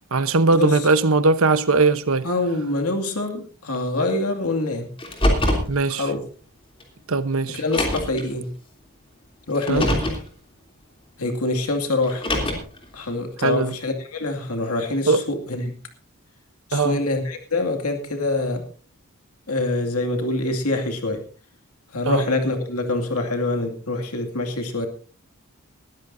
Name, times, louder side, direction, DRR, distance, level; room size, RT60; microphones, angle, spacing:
voice 1, 0.1-2.3 5.7-6.0 7.1-7.6 9.7-9.8 13.4-13.7 15.1-15.2 16.7-17.0 22.0-22.3, right 3 dB, 70° right, 1.0 m, -19 dB
voice 2, 2.2-4.9 5.9-6.2 7.5-8.5 9.5-10.2 11.2-12.2 12.9-15.7 16.7-18.6 19.5-21.2 21.9-24.9, left 2 dB, 90° left, 2.4 m, -25 dB
Car, 5.0-5.7 6.8-6.9 7.6-8.2 9.5-10.2 12.0-12.8, left 1 dB, 25° left, 3.1 m, -23 dB
20.5 x 13.5 x 2.7 m
head